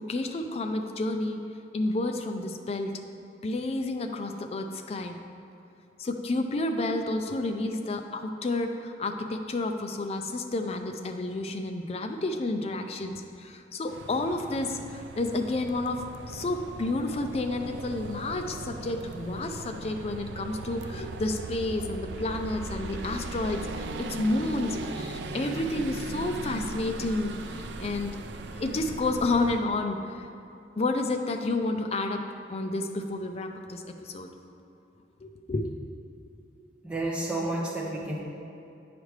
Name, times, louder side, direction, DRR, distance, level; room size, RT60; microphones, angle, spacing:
voice 1, 0.0-1.4 1.7-3.0 3.4-5.2 6.0-28.2 28.6-30.3 30.8-32.2 32.5-34.3 35.2-35.7, left 2 dB, 35° left, 5 dB, 0.4 m, -30 dB
sound 1, 13.9-29.6, right 3 dB, 85° right, 0.4 m, -38 dB
voice 2, 36.8-38.2, right 2 dB, 5° right, -5 dB, 1.0 m, -30 dB
9.0 x 5.0 x 3.2 m, 2.8 s
head